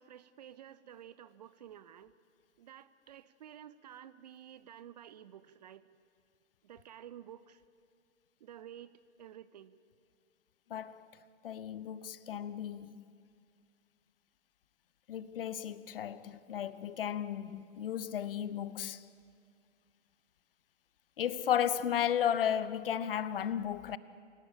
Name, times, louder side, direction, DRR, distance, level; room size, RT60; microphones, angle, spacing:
voice 1, 0.0-2.1 2.6-5.9 6.6-7.6 8.4-8.9 9.2-9.7, right 10 dB, 35° right, 0.6 m, -51 dB
voice 2, 10.7-11.1 11.4-13.0 15.1-19.0 21.2-24.0, left 9 dB, 45° left, 0.8 m, -34 dB
27.5 x 17.5 x 8.7 m
figure-of-eight pair, 120°, 38 cm